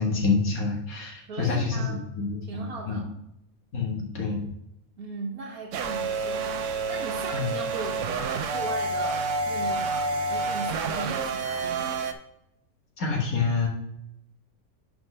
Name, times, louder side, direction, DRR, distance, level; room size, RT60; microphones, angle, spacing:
voice 1, 0.0-3.0 3.7-4.4 7.3-7.6 13.0-13.7, left 4 dB, 70° left, -1 dB, 2.1 m, -27 dB
voice 2, 1.3-2.0 2.5-3.1 5.0-11.9, right 3 dB, 85° right, -2 dB, 1.5 m, -38 dB
sound 1, 5.7-12.1, right 3 dB, 65° right, 0.9 m, -29 dB
10.5 x 5.1 x 3.3 m, 0.81 s
omnidirectional pair, 1.6 m